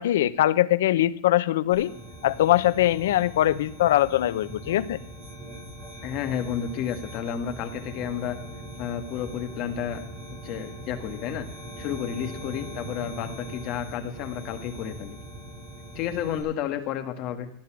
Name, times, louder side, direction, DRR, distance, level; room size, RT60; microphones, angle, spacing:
voice 1, 0.0-1.9 2.2-5.0, left 13 dB, 75° left, 16 dB, 0.8 m, -22 dB
sound 1, 1.7-16.4, right 1 dB, 25° right, 7.2 m, -41 dB
voice 2, 6.0-8.4 8.8-10.0 10.4-11.5 11.8-15.2 16.0-17.5, left 9 dB, 35° left, 7 dB, 1.8 m, -31 dB
17.0 x 11.0 x 6.1 m, 0.70 s
supercardioid pair, 170°, 0 cm